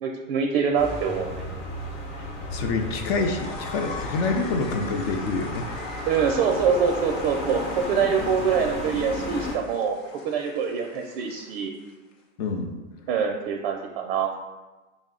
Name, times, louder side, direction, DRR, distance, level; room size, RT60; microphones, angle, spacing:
voice 1, 0.0-1.5 6.1-11.7 13.1-14.3, right 6 dB, 50° right, 2 dB, 0.4 m, -25 dB
sound 1, 0.8-9.6, left 1 dB, 30° left, 0.9 m, -34 dB
voice 2, 2.5-5.7 12.4-12.7, left 3 dB, 50° left, 4 dB, 0.5 m, -27 dB
sound 2, 2.8-12.1, left 3 dB, 75° left, 0.8 m, -44 dB
5.0 x 2.0 x 3.7 m, 1.2 s
supercardioid pair, 140°, 38 cm